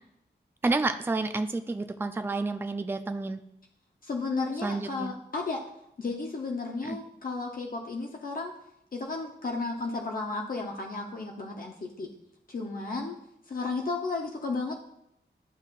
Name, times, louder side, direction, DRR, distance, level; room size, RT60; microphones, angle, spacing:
voice 1, 0.6-3.4 4.6-5.1 6.8-7.0, right 3 dB, 10° right, 8 dB, 0.4 m, -30 dB
voice 2, 4.0-5.6 6.0-8.6 8.9-12.1 12.5-13.2 13.5-14.8, left 3 dB, 50° left, -1 dB, 0.8 m, -33 dB
11.5 x 5.6 x 2.4 m, 0.79 s
wide cardioid pair, 105°, 18 cm